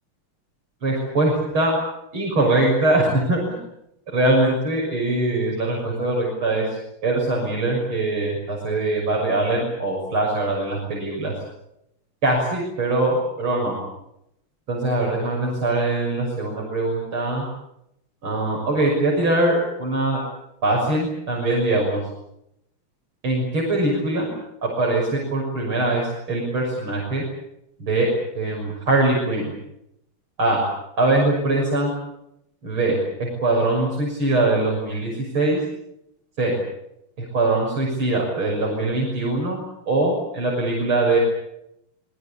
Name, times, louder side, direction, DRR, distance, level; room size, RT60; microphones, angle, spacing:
voice 1, 0.8-1.7 2.1-3.4 4.1-6.7 7.0-11.3 12.2-13.8 14.7-17.4 18.2-20.2 20.6-22.0 23.2-24.3 24.6-26.0 26.3-27.2 27.8-28.1 28.4-29.5 30.4-30.6 31.0-31.9 32.6-35.6 36.4-36.5 37.3-39.6 39.9-41.2, right 2 dB, 80° right, -2 dB, 7.4 m, -22 dB
26.5 x 22.5 x 8.6 m, 0.82 s
omnidirectional pair, 2.3 m